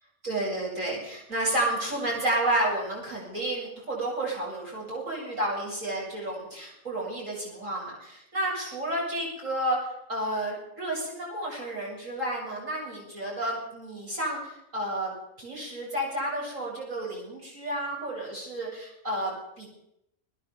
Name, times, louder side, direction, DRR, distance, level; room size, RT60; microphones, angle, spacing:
voice 1, 0.2-19.7, right 1 dB, 65° right, -3 dB, 8.3 m, -31 dB
21.5 x 18.5 x 7.4 m, 0.79 s
omnidirectional pair, 1.5 m